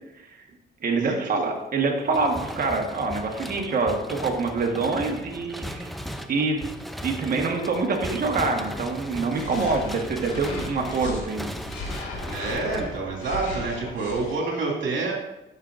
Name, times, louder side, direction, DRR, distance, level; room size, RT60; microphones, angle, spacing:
voice 1, 0.8-5.9 6.3-6.6 7.0-11.5, right 3 dB, 45° right, 1 dB, 1.5 m, -25 dB
sound 1, 2.1-13.3, equal, ahead, 0.6 m, -37 dB
sound 2, 9.3-11.2 11.7-14.4, left 2 dB, 80° left, 1.9 m, -36 dB
voice 2, 12.2-15.1, right 3 dB, 65° right, -2 dB, 2.6 m, -28 dB
11.5 x 6.3 x 2.6 m, 0.94 s
cardioid pair, 90°, 20 cm